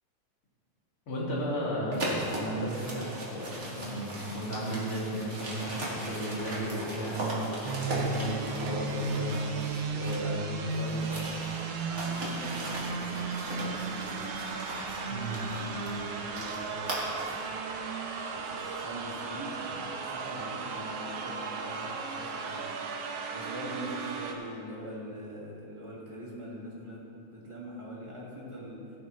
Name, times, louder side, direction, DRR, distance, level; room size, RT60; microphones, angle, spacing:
voice 1, 1.1-9.4 9.9-11.2 15.1-15.4, right 1 dB, 45° left, -7 dB, 3.4 m, -34 dB
sound 1, 1.9-10.4 10.7-17.5, right 1 dB, 30° right, 2.0 m, -38 dB
sound 2, 7.6-24.3, right 4 dB, 70° right, 1.7 m, -35 dB
voice 2, 10.1-11.2 11.8-14.4 15.2-17.3 18.3-22.6 23.3-27.0 27.3-28.8, equal, 15° right, -6 dB, 1.5 m, -43 dB
16.0 x 9.4 x 3.2 m, 2.6 s
omnidirectional pair, 3.4 m